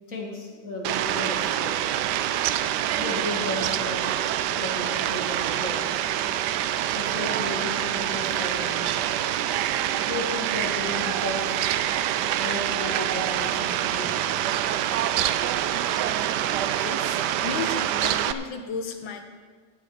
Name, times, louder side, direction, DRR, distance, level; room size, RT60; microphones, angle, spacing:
voice 1, 0.1-1.9 3.0-4.1 4.6-6.0 7.0-9.4 10.1-11.7 12.4-14.2, left 2 dB, 45° left, -2 dB, 2.6 m, -34 dB
Fowl, 0.8-18.3, right 11 dB, 75° right, 1.1 m, -26 dB
voice 2, 16.8-19.2, left 4 dB, 85° left, 6 dB, 1.9 m, -34 dB
14.5 x 9.2 x 5.0 m, 1.5 s
omnidirectional pair, 2.1 m